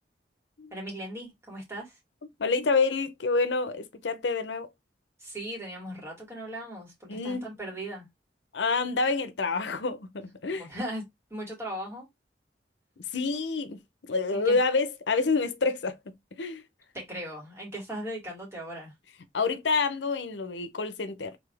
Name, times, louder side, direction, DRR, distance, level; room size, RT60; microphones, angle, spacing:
voice 1, 0.7-2.0 5.2-8.1 10.5-11.0 11.3-12.1 14.3-14.6 16.9-18.9, right 1 dB, 15° right, 2.6 m, -38 dB
voice 2, 2.4-4.7 7.1-7.5 8.5-10.7 13.1-15.9 16.4-16.6 19.3-21.3, left 4 dB, 85° left, 0.7 m, -28 dB
4.1 x 3.5 x 3.3 m
head